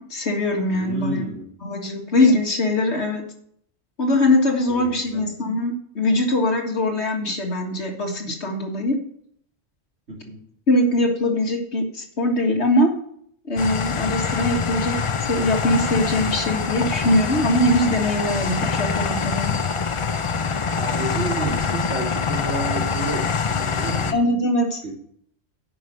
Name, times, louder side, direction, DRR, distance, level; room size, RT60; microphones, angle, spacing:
voice 1, 0.0-1.3 1.6-3.2 4.0-9.0 10.7-12.9 13.5-14.9 15.2-19.5 24.1-24.9, left 1 dB, 65° left, 2 dB, 2.1 m, -22 dB
voice 2, 0.7-1.5 4.7-5.3 10.1-10.4 20.7-24.2 24.8-24.9, right 2 dB, 75° right, -2 dB, 3.2 m, -30 dB
sound 1, 13.6-24.1, left 5 dB, 40° left, 0.4 m, -25 dB
10.0 x 5.5 x 6.3 m, 0.65 s
omnidirectional pair, 1.3 m